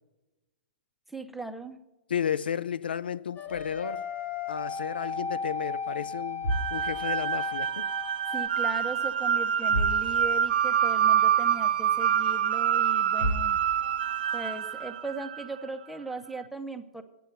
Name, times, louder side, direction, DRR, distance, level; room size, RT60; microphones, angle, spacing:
voice 1, 1.1-1.8 8.3-13.6 14.3-17.0, right 3 dB, ahead, 0.7 m, -38 dB
voice 2, 2.1-4.1 4.5-7.9, left 8 dB, 85° left, 0.3 m, -33 dB
sound 1, 3.4-8.5, left 5 dB, 25° left, 1.1 m, -35 dB
sound 2, 3.5-5.1 5.4-5.7 6.2-8.0 8.3-9.0 9.3-9.4 9.6-10.6 11.0-11.1 11.7-11.8 12.8-12.9 13.2-14.2, right 1 dB, 70° left, 1.3 m, -35 dB
sound 3, 6.5-15.7, right 9 dB, 75° right, 0.4 m, -26 dB
8.3 x 7.6 x 6.7 m
hypercardioid pair, 125°, 5 cm